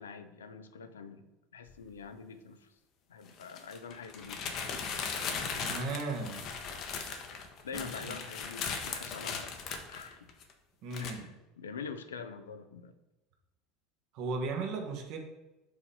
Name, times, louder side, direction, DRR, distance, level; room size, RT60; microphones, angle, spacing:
voice 1, 0.0-2.7 3.1-4.6 7.6-9.6 9.9-10.3 11.0-12.9, left 5 dB, 75° left, 10 dB, 0.5 m, -45 dB
sound 1, 1.7-1.8 3.3-10.5 10.9-11.1, left 5 dB, 45° left, 0.8 m, -38 dB
voice 2, 5.6-6.4 7.7-8.2 10.8-11.3 14.1-15.2, right 3 dB, 55° right, 2 dB, 1.2 m, -36 dB
4.8 x 4.0 x 5.2 m, 1.0 s
figure-of-eight pair, 70°, 0 cm